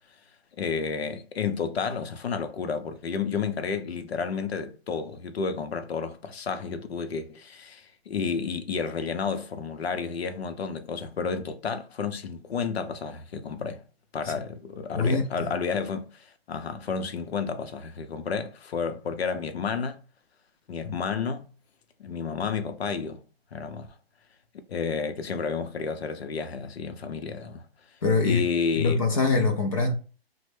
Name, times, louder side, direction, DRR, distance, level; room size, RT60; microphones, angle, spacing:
voice 1, 0.6-13.8 14.1-20.0 20.7-21.5 22.0-23.2 23.5-23.9 24.7-27.7 28.2-29.0, left 5 dB, 85° left, 0.7 m, -31 dB
voice 2, 14.9-15.5 28.0-28.5 28.7-29.9, left 3 dB, 35° left, 0.4 m, -23 dB
3.1 x 2.1 x 3.2 m
hypercardioid pair, 155°, 31 cm